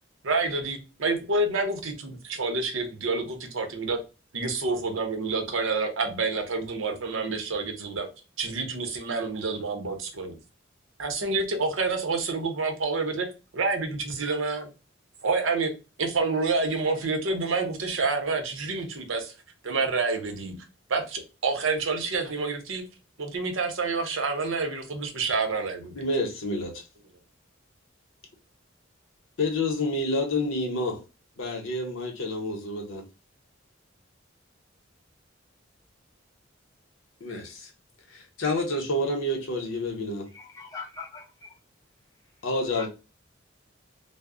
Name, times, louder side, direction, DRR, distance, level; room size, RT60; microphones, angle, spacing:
voice 1, 0.2-4.0 4.3-8.1 8.4-10.4 11.0-13.3 13.5-14.7 15.2-15.7 16.0-19.3 19.6-20.6 20.9-22.8 23.2-26.0, right 3 dB, 85° right, 0.7 m, -28 dB
voice 2, 25.9-26.8 29.4-31.0 31.4-33.0 37.2-37.7 38.1-40.3 42.4-42.9, left 1 dB, 85° left, 0.8 m, -28 dB
voice 3, 40.3-41.6 42.7-42.9, left 5 dB, 20° left, 0.7 m, -41 dB
2.0 x 2.0 x 3.6 m
head